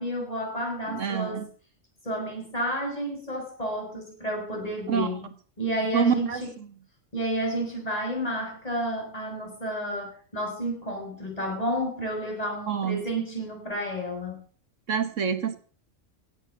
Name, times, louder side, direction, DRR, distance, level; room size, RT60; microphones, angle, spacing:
voice 1, 0.0-1.5 2.0-5.3 5.6-6.5 7.1-14.4, equal, 30° left, 0 dB, 6.4 m, -31 dB
voice 2, 0.9-1.5 4.9-5.1 5.9-6.4 12.7-13.0 14.9-15.6, right 7 dB, 75° right, 11 dB, 1.6 m, -26 dB
17.0 x 8.0 x 7.3 m, 0.43 s
omnidirectional pair, 1.3 m